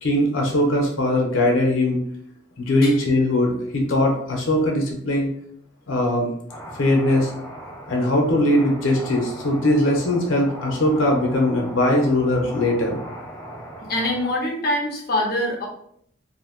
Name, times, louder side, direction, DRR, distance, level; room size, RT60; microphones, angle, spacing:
voice 1, 0.0-2.0 2.6-5.3 5.9-6.3 6.8-7.3 7.9-13.0, left 1 dB, 90° left, 0 dB, 0.8 m, -20 dB
sound 1, 6.5-14.3, right 1 dB, 10° left, 0.5 m, -38 dB
voice 2, 13.9-15.6, left 1 dB, 50° left, -1 dB, 0.7 m, -24 dB
2.8 x 2.1 x 2.8 m, 0.66 s
head